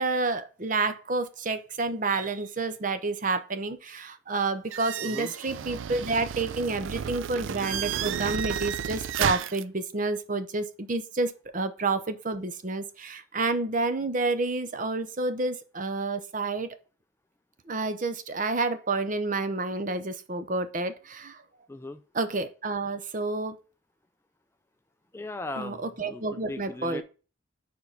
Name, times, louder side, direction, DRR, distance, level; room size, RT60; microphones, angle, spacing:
voice 1, 0.0-16.7 17.7-21.4 22.1-23.5 25.6-27.0, right 3 dB, 40° right, 10 dB, 0.7 m, -29 dB
sound 1, 4.7-9.6, right 8 dB, 75° right, 0.4 m, -32 dB
voice 2, 5.0-5.3 21.7-22.0 25.1-27.0, left 2 dB, 15° left, 9 dB, 0.3 m, -38 dB
4.6 x 4.6 x 5.6 m, 0.34 s
head